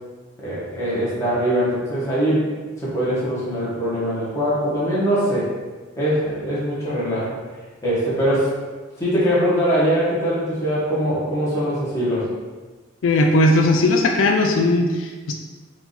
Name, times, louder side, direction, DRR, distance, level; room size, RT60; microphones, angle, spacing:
voice 1, 0.4-2.5 2.8-5.5 6.0-7.4 7.8-8.5 9.0-12.3, equal, 15° left, -9 dB, 1.4 m, -22 dB
voice 2, 13.0-15.3, left 2 dB, 80° left, 3 dB, 0.4 m, -18 dB
4.6 x 2.7 x 4.0 m, 1.3 s
head